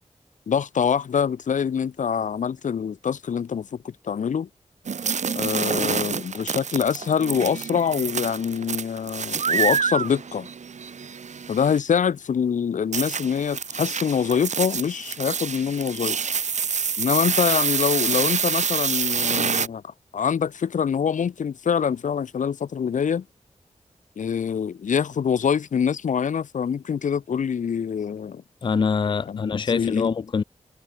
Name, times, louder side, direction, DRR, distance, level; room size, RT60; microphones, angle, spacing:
voice 1, 0.5-4.5 5.3-10.5 11.5-16.2 17.0-23.2 24.2-28.4 29.3-30.1, left 7 dB, 85° left, 0.6 m, -25 dB
sound 1, 4.9-11.8 12.9-19.7, right 6 dB, 70° right, 0.8 m, -27 dB
voice 2, 28.6-30.4, left 5 dB, 40° left, 0.4 m, -24 dB
wide cardioid pair, 100°, 13 cm